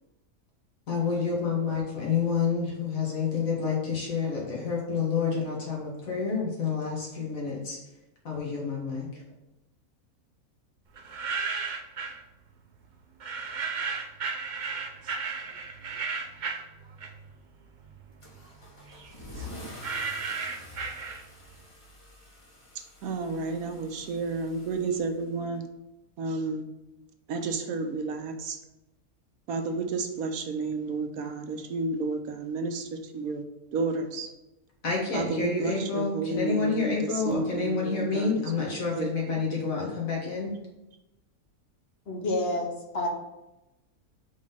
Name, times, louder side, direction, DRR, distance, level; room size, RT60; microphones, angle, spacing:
voice 1, 0.9-7.8 8.2-9.2 34.8-40.5, left 5 dB, 65° left, -3 dB, 2.1 m, -29 dB
sound 1, 11.0-12.2 13.2-17.4 17.8-21.5, right 5 dB, 50° right, 0.5 m, -34 dB
Car / Engine starting / Accelerating revving vroom, 18.2-25.6, left 2 dB, 25° left, 1.2 m, -47 dB
voice 2, 22.7-25.6 26.2-26.6 27.3-28.6 29.5-33.4 33.7-34.3 35.1-38.3 39.0-39.1, right 3 dB, 75° right, 6 dB, 1.1 m, -31 dB
voice 3, 42.1-43.1, left 2 dB, 45° left, 0 dB, 1.2 m, -29 dB
5.1 x 3.8 x 5.4 m, 0.97 s
omnidirectional pair, 1.5 m